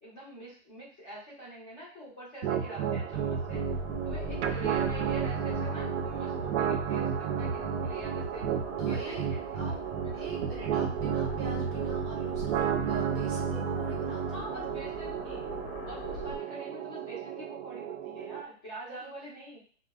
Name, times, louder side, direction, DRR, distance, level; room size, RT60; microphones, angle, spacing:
voice 1, 0.0-3.6 4.0-8.5 8.8-9.8 10.0-10.2 14.3-15.4 15.8-19.8, right 1 dB, 15° left, -7 dB, 0.5 m, -45 dB
sound 1, 2.4-18.4, right 7 dB, 75° right, 0.5 m, -32 dB
sound 2, 3.1-16.4, left 3 dB, 55° left, 0.7 m, -43 dB
voice 2, 8.8-9.3 9.5-9.8 10.1-12.6 12.8-14.7 18.8-19.1, right 3 dB, 25° right, -2 dB, 0.7 m, -44 dB
3.8 x 2.0 x 2.2 m, 0.43 s
hypercardioid pair, 155°, 35 cm